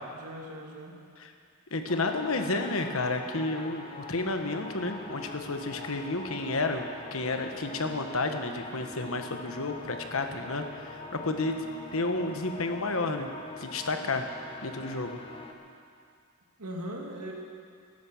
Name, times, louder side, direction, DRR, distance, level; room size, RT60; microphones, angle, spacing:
voice 1, 0.1-1.0 16.6-17.3, equal, 80° right, -1 dB, 2.5 m, -39 dB
voice 2, 1.7-6.9 7.1-11.7 11.9-13.3 13.6-14.2 14.6-15.2, left 2 dB, 65° left, 5 dB, 1.2 m, -31 dB
sound 1, 1.9-15.5, left 2 dB, 25° left, 1.0 m, -44 dB
16.0 x 12.0 x 7.1 m, 2.3 s
head